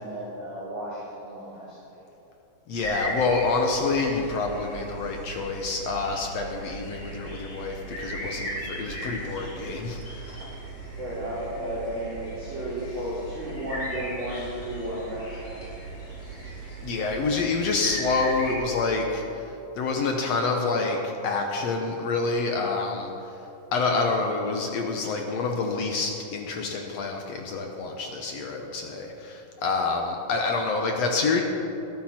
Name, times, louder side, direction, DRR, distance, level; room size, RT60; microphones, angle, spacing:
voice 1, 0.0-2.0 11.0-15.7, equal, 20° right, -10 dB, 3.9 m, -34 dB
voice 2, 2.7-10.3 16.8-19.2 19.8-23.1 23.7-31.4, left 3 dB, 65° left, 2 dB, 1.9 m, -27 dB
sound 1, 2.8-18.6, right 1 dB, 25° left, 4.3 m, -37 dB
21.0 x 12.0 x 4.4 m, 3.0 s
omnidirectional pair, 3.8 m